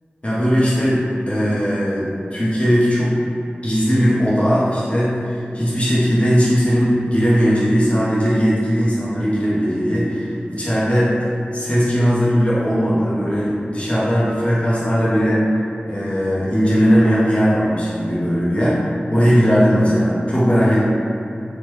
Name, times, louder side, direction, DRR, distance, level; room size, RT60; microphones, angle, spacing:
voice 1, 0.2-3.1 3.6-11.1 11.5-15.5 15.9-18.8 19.1-20.8, equal, 35° left, -9 dB, 0.7 m, -18 dB
3.1 x 2.1 x 3.0 m, 2.7 s
wide cardioid pair, 45°, 4 cm